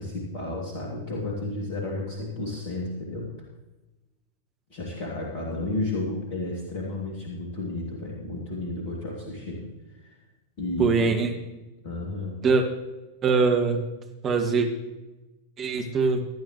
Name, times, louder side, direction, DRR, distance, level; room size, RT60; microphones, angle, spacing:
voice 1, 0.0-3.3 4.7-9.7 10.0-10.2 10.6-11.2 11.8-12.4, left 2 dB, 45° left, -2 dB, 2.7 m, -32 dB
voice 2, 10.8-11.3 12.4-12.6 13.2-13.8 14.2-14.7 15.6-16.3, right 4 dB, 30° right, 3 dB, 1.8 m, -22 dB
17.5 x 11.0 x 3.2 m, 1.1 s
figure-of-eight pair, 90°, 0 cm